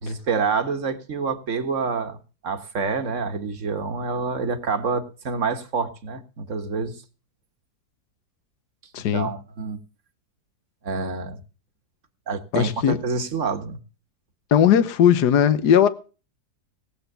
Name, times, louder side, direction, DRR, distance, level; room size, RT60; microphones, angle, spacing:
voice 1, 0.0-2.2 2.4-6.9 9.1-9.8 10.8-11.4 12.3-13.8, right 5 dB, 50° right, 1.8 m, -27 dB
voice 2, 8.9-9.3 12.5-13.0 14.5-15.9, left 9 dB, 80° left, 1.5 m, -18 dB
18.5 x 8.2 x 6.7 m
omnidirectional pair, 1.7 m